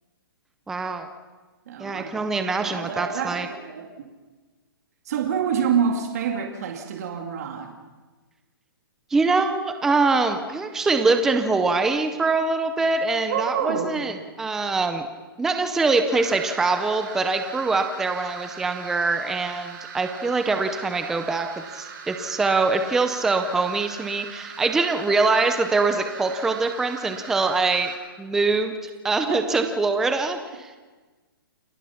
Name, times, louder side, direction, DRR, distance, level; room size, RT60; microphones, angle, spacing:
voice 1, 0.7-1.1 1.8-3.5 9.1-15.1 15.4-21.5 21.7-27.9 28.2-28.7 29.0-30.8, right 3 dB, 5° right, 7 dB, 0.6 m, -23 dB
voice 2, 1.7-2.3 2.6-3.9 5.1-7.7 13.3-14.0 29.3-29.7, right 7 dB, 45° right, 3 dB, 2.3 m, -27 dB
sound 1, 16.1-27.9, right 6 dB, 60° right, 7.9 m, -40 dB
29.0 x 18.0 x 5.8 m, 1.3 s
hypercardioid pair, 170°, 12 cm